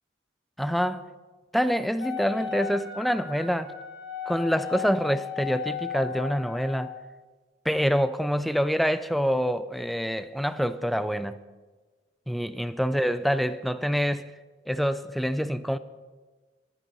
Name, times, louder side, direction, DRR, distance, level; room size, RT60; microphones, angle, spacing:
voice 1, 0.6-1.1 1.5-3.7 4.3-6.9 7.7-11.4 12.3-14.3 14.7-15.8, equal, ahead, 0.5 m, -26 dB
Wind instrument woodwind instrument, 2.0-7.0, left 7 dB, 70° left, 1.8 m, -36 dB
23.0 x 8.2 x 5.4 m
head